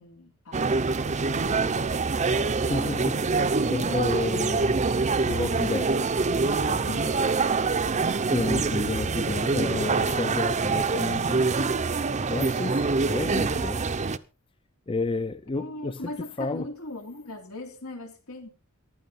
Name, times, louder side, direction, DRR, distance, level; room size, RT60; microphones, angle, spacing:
voice 1, 0.0-2.0 3.4-4.2 6.5-7.2 12.6-12.9 15.5-18.5, left 2 dB, 85° left, 3.5 m, -40 dB
sound 1, 0.5-14.2, right 4 dB, 35° right, 0.7 m, -25 dB
voice 2, 2.7-4.9 5.2-5.9 8.3-11.6 12.3-13.8 14.9-16.0 16.4-16.7, left 3 dB, 25° left, 0.6 m, -31 dB
14.5 x 12.0 x 4.2 m
head